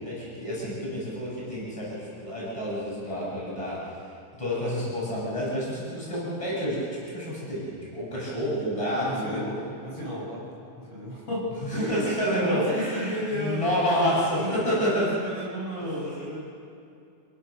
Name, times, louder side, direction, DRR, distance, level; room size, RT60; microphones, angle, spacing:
voice 1, 0.0-4.0 4.3-9.4 11.6-15.2 15.8-16.2, equal, 10° left, -7 dB, 7.9 m, -29 dB
voice 2, 9.1-10.5 10.8-13.7 14.3-14.5 14.9-16.4, equal, 45° left, -6 dB, 7.3 m, -33 dB
27.5 x 16.5 x 6.7 m, 2.5 s
omnidirectional pair, 3.7 m